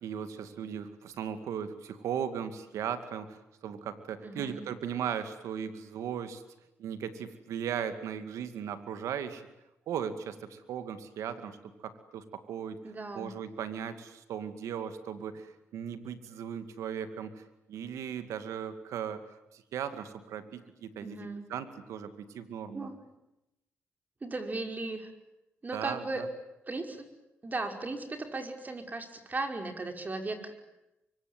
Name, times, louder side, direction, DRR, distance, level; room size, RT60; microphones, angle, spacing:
voice 1, 0.0-6.4 6.8-9.4 9.9-12.8 13.1-17.4 17.7-19.2 19.5-22.9 25.7-26.3, right 8 dB, 80° right, 10 dB, 2.3 m, -37 dB
voice 2, 4.2-4.7 12.8-13.3 21.0-21.4 22.7-23.0 24.2-25.1 25.6-26.2 26.7-27.1 27.4-30.6, right 2 dB, 35° right, 5 dB, 5.5 m, -36 dB
24.5 x 24.5 x 9.5 m, 0.90 s
supercardioid pair, 60°, 5 cm